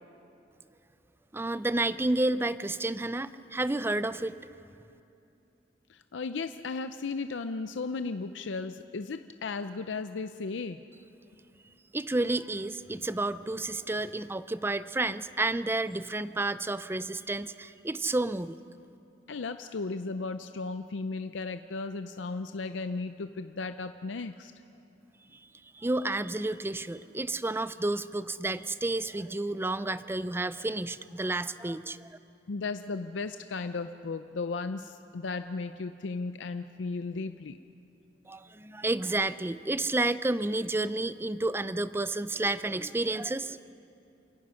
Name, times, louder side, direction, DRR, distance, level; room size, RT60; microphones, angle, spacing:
voice 1, 1.3-4.3 11.9-18.6 25.7-32.2 38.3-43.6, right 2 dB, 15° right, 14 dB, 0.4 m, -30 dB
voice 2, 5.9-10.8 19.3-24.5 32.5-37.6, left 4 dB, 80° left, 9 dB, 0.5 m, -35 dB
28.0 x 17.5 x 5.7 m, 2.7 s
head